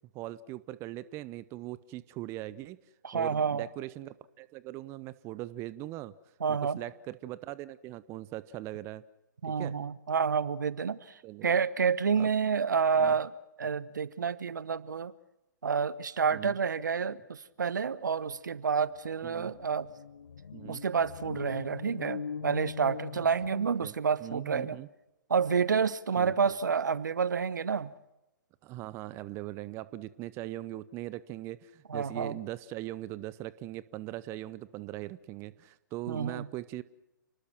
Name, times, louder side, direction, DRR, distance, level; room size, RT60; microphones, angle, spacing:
voice 1, 0.1-2.8 3.1-6.1 6.5-9.0 9.4-9.8 11.2-11.5 12.1-12.3 13.0-13.1 16.3-16.6 19.2-19.5 20.5-20.8 23.5-23.9 24.2-24.9 26.2-26.5 28.6-36.8, right 16 dB, 25° right, 17 dB, 0.8 m, -40 dB
voice 2, 3.0-3.7 6.4-6.8 9.4-15.1 15.6-19.9 20.7-24.8 25.3-27.9 31.9-32.4 36.1-36.5, right 6 dB, 70° right, 18 dB, 1.1 m, -29 dB
sound 1, 18.6-18.7 18.9-24.0, left 6 dB, 65° left, 0.9 m, -42 dB
29.5 x 20.0 x 6.0 m, 0.92 s
figure-of-eight pair, 120°, 10 cm